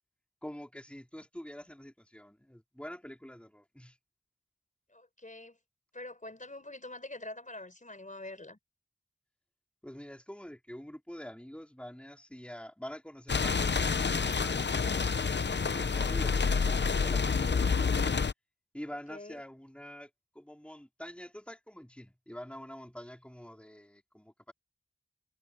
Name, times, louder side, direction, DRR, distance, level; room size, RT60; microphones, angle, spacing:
voice 1, 0.4-4.0 9.8-18.1 18.7-20.1 20.3-24.5, equal, 5° left, 3.3 m, -46 dB
voice 2, 4.9-5.6 5.9-8.6 19.1-19.4, left 2 dB, 45° left, 4.7 m, -45 dB
sound 1, 13.3-18.3, left 5 dB, 70° left, 0.7 m, -28 dB
wide cardioid pair, 65°, 19 cm